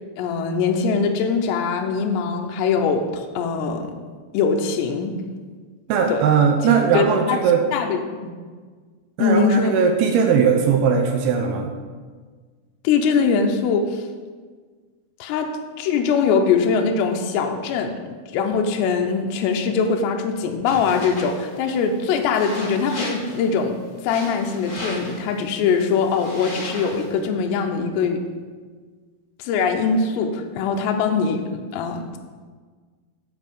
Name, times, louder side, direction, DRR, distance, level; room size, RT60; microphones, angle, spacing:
voice 1, 0.2-3.9 4.3-5.2 6.1-6.2 6.6-7.4 7.7-8.0 9.2-9.8 12.8-14.0 15.2-18.0 18.3-23.7 24.0-28.2 29.4-32.2, left 5 dB, 80° left, 3 dB, 2.9 m, -22 dB
voice 2, 5.9-7.6 9.2-11.7, right 6 dB, 75° right, 3 dB, 2.4 m, -19 dB
sound 1, 20.7-27.2, left 1 dB, 30° left, 2.4 m, -37 dB
9.5 x 5.2 x 6.8 m, 1.5 s
omnidirectional pair, 5.0 m